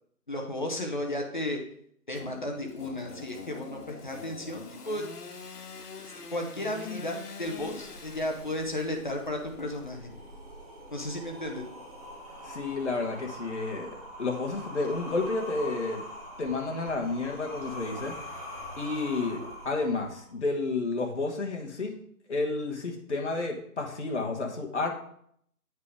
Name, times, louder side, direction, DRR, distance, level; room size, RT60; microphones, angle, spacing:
voice 1, 0.3-1.6 2.1-5.1 6.1-10.1 10.9-11.7, left 1 dB, 30° left, 2 dB, 0.8 m, -34 dB
Engine / Sawing, 2.1-10.4, left 4 dB, 85° left, 1.0 m, -45 dB
sound 1, 7.4-20.4, left 1 dB, 25° right, 1.0 m, -43 dB
voice 2, 12.4-13.9 14.2-16.0 16.4-18.1 18.8-21.9 22.3-24.9, left 3 dB, 50° left, 1 dB, 1.4 m, -31 dB
8.2 x 3.5 x 4.9 m, 0.67 s
figure-of-eight pair, 160°, 46 cm